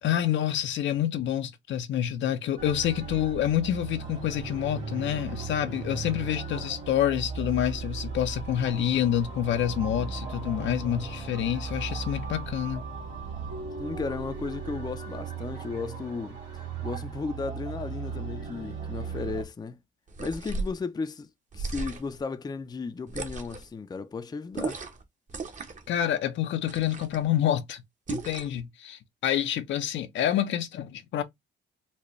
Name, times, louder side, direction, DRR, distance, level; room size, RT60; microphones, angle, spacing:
voice 1, 0.0-12.8 25.9-27.8 28.1-31.2, left 11 dB, 70° left, 0.6 m, -27 dB
sound 1, 2.6-19.4, right 5 dB, 90° right, 1.8 m, -37 dB
voice 2, 13.8-19.8 20.2-21.3 21.5-24.8, left 4 dB, 20° left, 0.5 m, -35 dB
sound 2, 20.1-20.8 21.5-22.2 23.1-23.7 24.5-25.0 25.3-25.9 26.7-27.2 28.1-28.6, right 3 dB, 40° right, 0.9 m, -35 dB
4.1 x 2.2 x 3.0 m
cardioid pair, 90°, 20 cm